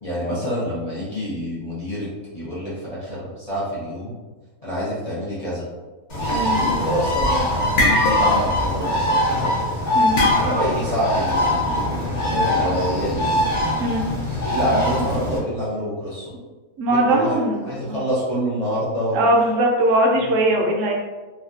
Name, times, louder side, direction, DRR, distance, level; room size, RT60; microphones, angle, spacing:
voice 1, 0.0-4.1 4.6-5.6 6.5-9.5 10.3-11.6 12.0-13.4 14.4-16.3 16.9-17.4 17.6-19.2 20.2-20.3, equal, 60° left, -10 dB, 0.4 m, -27 dB
Bird, 6.1-15.4, left 1 dB, 40° left, 0.7 m, -22 dB
sound 1, 7.8-8.6 8.9-9.1 10.2-10.9, left 1 dB, 75° left, 1.1 m, -22 dB
voice 2, 16.8-18.0 19.1-20.9, right 1 dB, 65° right, 0 dB, 0.8 m, -20 dB
3.3 x 2.2 x 2.5 m, 1.3 s
omnidirectional pair, 1.6 m